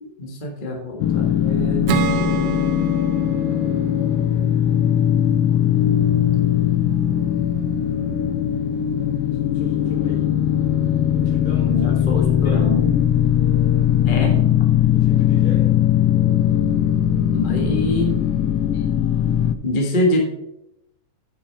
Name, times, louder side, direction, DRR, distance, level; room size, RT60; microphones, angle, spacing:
voice 1, 0.0-2.6 5.3-5.4 11.7-12.9 14.1-14.4 17.3-18.2 19.6-20.2, left 1 dB, 30° left, 0 dB, 1.0 m, -25 dB
sound 1, 1.0-19.5, left 10 dB, 80° left, 1.4 m, -19 dB
Acoustic guitar / Strum, 1.9-5.3, right 11 dB, 75° right, 1.7 m, -29 dB
voice 2, 9.4-10.3 11.1-12.7 14.9-15.7, right 1 dB, 50° left, -5 dB, 4.5 m, -38 dB
8.7 x 8.4 x 4.5 m, 0.83 s
omnidirectional pair, 3.3 m